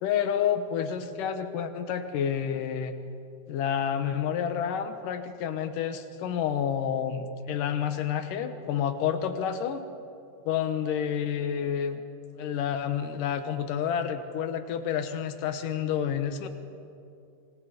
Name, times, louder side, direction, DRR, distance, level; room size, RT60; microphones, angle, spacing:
voice 1, 0.0-2.9 3.5-9.8 10.5-12.0 12.4-16.5, left 8 dB, 80° left, 9 dB, 2.9 m, -29 dB
27.0 x 25.5 x 5.2 m, 2.5 s
omnidirectional pair, 3.7 m